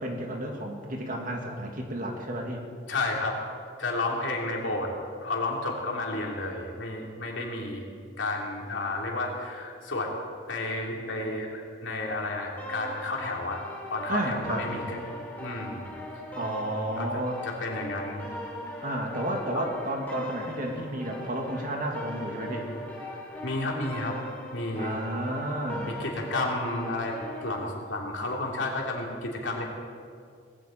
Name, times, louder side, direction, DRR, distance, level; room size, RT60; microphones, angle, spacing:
voice 1, 0.0-2.6 14.1-14.7 16.4-17.4 18.8-22.7 24.7-26.0, right 1 dB, 45° right, 1 dB, 2.1 m, -32 dB
voice 2, 2.9-3.4 3.8-4.9 5.2-7.8 8.2-10.1 10.5-13.6 13.9-15.0 15.4-15.9 17.0-18.2 19.5-19.6 23.4-24.2 24.5-25.0 25.9-29.6, left 2 dB, 75° left, -1 dB, 2.9 m, -31 dB
sound 1, 12.6-27.6, equal, 10° left, 2.7 m, -40 dB
18.5 x 16.0 x 4.5 m, 2.2 s
head